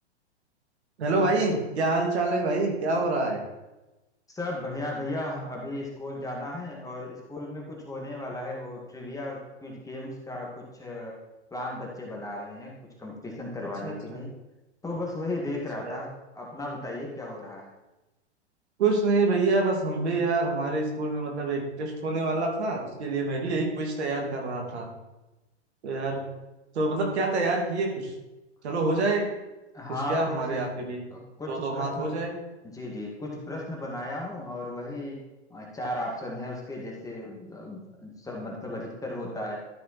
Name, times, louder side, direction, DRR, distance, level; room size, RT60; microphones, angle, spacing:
voice 1, 1.0-3.4 13.8-14.2 15.8-16.0 18.8-24.9 25.8-26.2 26.7-28.1 28.6-29.3 30.1-31.0 31.5-32.3, right 3 dB, 70° right, 1 dB, 2.7 m, -26 dB
voice 2, 4.3-11.2 11.5-12.7 13.0-14.3 14.8-17.7 29.7-30.6 31.1-32.1 32.7-35.2 35.5-39.6, left 1 dB, 10° left, -2 dB, 2.1 m, -35 dB
13.0 x 5.4 x 4.3 m, 1.0 s
hypercardioid pair, 120°, 34 cm